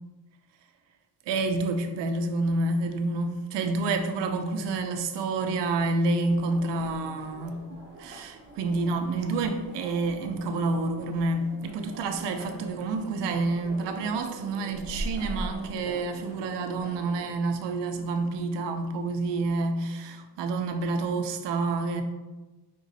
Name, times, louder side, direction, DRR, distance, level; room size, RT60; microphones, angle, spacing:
voice 1, 1.3-7.6 8.0-22.0, right 3 dB, 85° right, 0.6 m, -28 dB
sound 1, 6.3-17.2, right 1 dB, 30° right, 0.8 m, -42 dB
5.0 x 3.8 x 2.7 m
cardioid pair, 175°, 41 cm